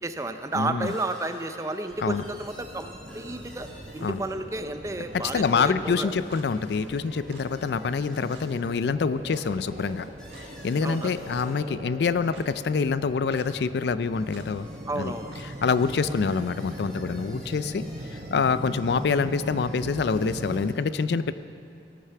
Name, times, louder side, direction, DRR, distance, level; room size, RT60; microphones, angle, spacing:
voice 1, 0.0-3.7 3.9-6.1 10.8-11.1 14.9-15.5, right 2 dB, 15° right, 8 dB, 0.5 m, -32 dB
voice 2, 0.5-0.9 2.0-2.2 4.0-4.2 5.1-10.1 10.4-14.7 15.0-15.1 15.6-17.9 18.3-21.3, left 5 dB, 65° left, 14 dB, 0.4 m, -26 dB
sound 1, 0.8-4.5 5.0-8.6 9.4-9.5 9.8-11.6 12.1-12.5 13.6-20.6, equal, 5° left, 1.9 m, -53 dB
sound 2, 1.9-20.7, equal, 40° right, 0.8 m, -40 dB
Clock, 5.3-5.5 6.3-6.5 7.3-7.5 8.3-8.5 9.3-9.5 10.3-10.5 11.3-11.5 12.3-12.5 13.3-13.5 14.3-14.5 15.3-15.5, right 4 dB, 80° right, 1.3 m, -49 dB
17.0 x 6.7 x 6.7 m, 2.6 s
head